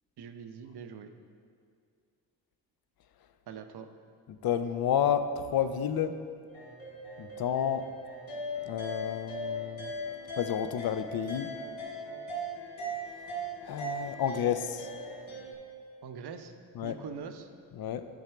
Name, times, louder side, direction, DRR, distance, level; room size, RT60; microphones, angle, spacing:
voice 1, 0.2-1.1 3.5-3.9 16.0-16.5 16.8-17.5, right 6 dB, 50° right, 7 dB, 0.7 m, -43 dB
voice 2, 4.4-6.2 7.2-7.9 8.7-9.9 10.4-11.5 13.6-14.9 16.7-17.0 17.8-18.1, left 9 dB, 50° left, 11 dB, 0.6 m, -30 dB
sound 1, 6.5-15.5, right 1 dB, 70° left, 1.9 m, -39 dB
9.7 x 3.9 x 4.5 m, 2.2 s
hypercardioid pair, 40°, 49 cm